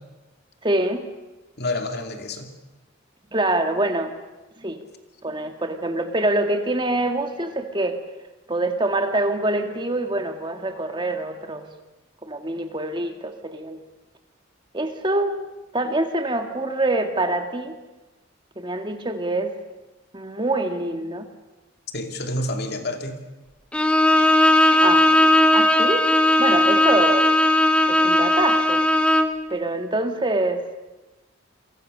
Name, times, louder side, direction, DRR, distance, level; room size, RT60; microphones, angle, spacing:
voice 1, 0.6-1.0 3.3-4.1 4.6-4.8 5.2-8.0 8.5-11.7 12.2-13.8 14.7-15.3 15.7-17.8 18.6-19.6 20.1-21.3 24.8-26.1 26.4-27.3 27.9-28.8 29.5-30.6, right 2 dB, 25° right, 6 dB, 1.8 m, -25 dB
voice 2, 1.6-2.5 21.9-23.2, left 1 dB, 55° left, 5 dB, 2.7 m, -28 dB
Bowed string instrument, 23.7-29.4, left 1 dB, 5° left, 1.3 m, -17 dB
29.0 x 23.5 x 6.7 m, 1.1 s
head